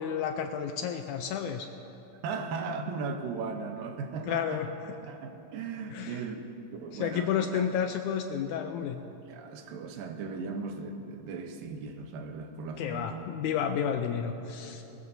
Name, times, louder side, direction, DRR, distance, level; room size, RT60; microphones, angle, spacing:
voice 1, 0.0-1.7 4.3-4.7 5.9-6.2 6.9-9.0 12.8-14.8, left 8 dB, 80° left, 6 dB, 1.8 m, -31 dB
voice 2, 2.2-4.6 4.9-6.4 6.7-7.7 9.3-13.2, right 4 dB, 90° right, 6 dB, 2.7 m, -37 dB
19.5 x 19.0 x 2.7 m, 2.9 s
omnidirectional pair, 3.9 m